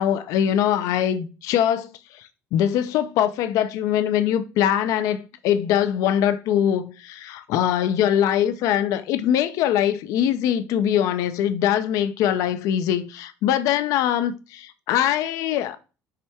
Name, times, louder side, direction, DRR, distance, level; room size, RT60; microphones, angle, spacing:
voice 1, 0.0-2.2 2.5-15.8, left 10 dB, 75° left, 0.4 m, -22 dB
4.8 x 2.3 x 4.2 m
cardioid pair, 125°, 6 cm